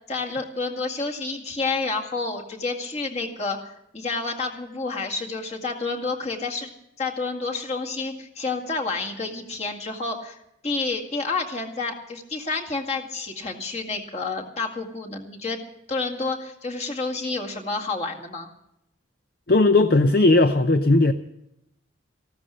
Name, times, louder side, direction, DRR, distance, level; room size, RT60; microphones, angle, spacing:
voice 1, 0.1-3.6 3.9-6.7 7.0-10.4 10.6-18.5, left 3 dB, 35° left, 1 dB, 2.0 m, -29 dB
voice 2, 19.5-21.1, left 2 dB, 50° left, 9 dB, 0.6 m, -17 dB
15.0 x 13.0 x 6.4 m, 0.82 s
head